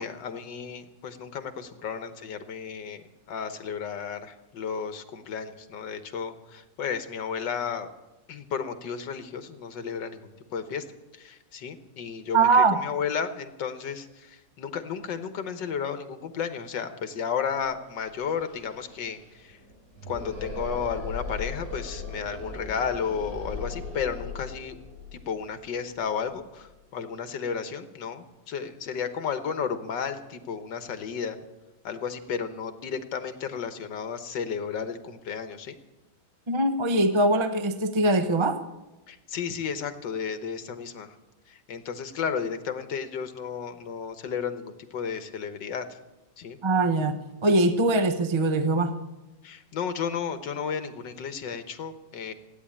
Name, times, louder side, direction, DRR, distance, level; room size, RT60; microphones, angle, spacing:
voice 1, 0.0-7.9 8.3-10.9 11.2-19.6 20.1-24.8 25.1-31.4 31.8-35.8 39.1-41.1 41.5-45.9 46.4-46.6 49.4-52.3, left 6 dB, 85° left, 9 dB, 1.8 m, -33 dB
voice 2, 12.3-12.8 36.5-38.6 46.6-48.9, right 2 dB, 25° right, 8 dB, 0.6 m, -22 dB
sound 1, 17.9-26.7, left 3 dB, 80° right, 8.1 m, -39 dB
16.5 x 9.6 x 8.6 m, 1.0 s
omnidirectional pair, 1.9 m